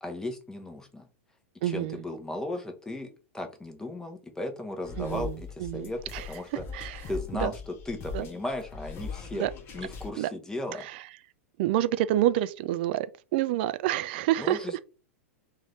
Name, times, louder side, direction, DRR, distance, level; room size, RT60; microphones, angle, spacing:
voice 1, 0.0-1.1 1.6-3.1 3.3-6.0 6.3-6.6 7.1-7.5 7.9-9.4 9.7-10.9 14.4-14.8, left 1 dB, 10° left, 0.8 m, -36 dB
voice 2, 1.6-2.0 5.0-7.5 8.1-8.3 9.4-9.5 10.2-10.3 10.7-11.1 11.6-13.1 13.3-14.7, right 13 dB, 50° right, 0.3 m, -28 dB
sound 1, 4.8-10.1, left 5 dB, 30° left, 1.0 m, -40 dB
3.7 x 2.5 x 3.3 m
figure-of-eight pair, 100°, 7 cm